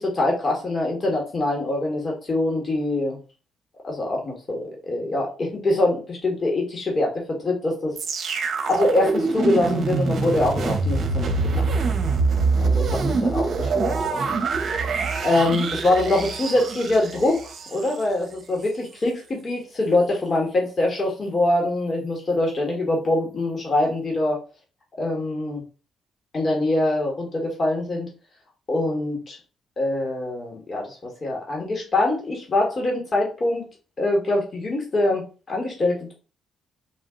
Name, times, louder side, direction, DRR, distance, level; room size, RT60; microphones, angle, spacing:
voice 1, 0.0-3.2 3.8-7.9 8.7-11.6 12.6-14.4 15.2-24.4 25.0-25.6 26.3-28.1 28.7-29.4 29.8-33.7 34.0-36.1, left 2 dB, 45° left, -1 dB, 1.7 m, -24 dB
sound 1, 8.0-18.0 18.6-18.7, right 4 dB, 60° right, 0.8 m, -24 dB
4.2 x 2.7 x 3.9 m, 0.35 s
hypercardioid pair, 45°, 0 cm